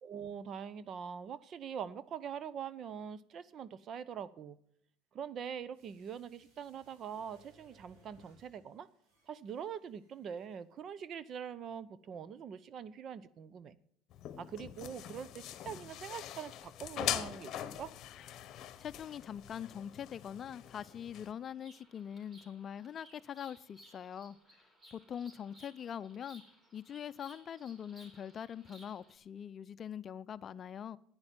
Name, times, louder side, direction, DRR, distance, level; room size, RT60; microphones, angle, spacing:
voice 1, 0.0-4.6 5.1-8.9 9.3-13.8 14.4-17.9, right 7 dB, 50° right, 0.8 m, -43 dB
sound 1, 5.7-10.8 11.1-11.2, right 3 dB, 80° right, 5.9 m, -67 dB
sound 2, 14.1-21.3, left 12 dB, 60° left, 0.9 m, -42 dB
voice 2, 18.8-26.4 26.7-31.0, left 8 dB, 45° left, 0.5 m, -43 dB
Bird vocalization bird call bird song, 20.7-29.2, right 1 dB, 30° right, 3.8 m, -61 dB
10.5 x 9.6 x 9.0 m
supercardioid pair, 90°, 0 cm